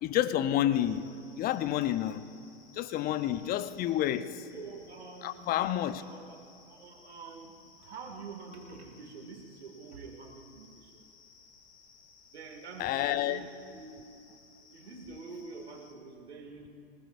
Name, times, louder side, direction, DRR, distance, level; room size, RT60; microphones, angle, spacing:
voice 1, 0.0-2.3 2.8-4.4 5.2-6.0 12.8-13.5, left 12 dB, 30° left, 0.7 m, -29 dB
sound 1, 0.7-15.9, left 5 dB, 65° left, 3.4 m, -60 dB
voice 2, 4.5-7.5 7.8-11.0 12.3-14.0 14.7-16.7, right 4 dB, 80° right, 2.3 m, -47 dB
26.0 x 20.0 x 2.6 m
hypercardioid pair, 105°, 32 cm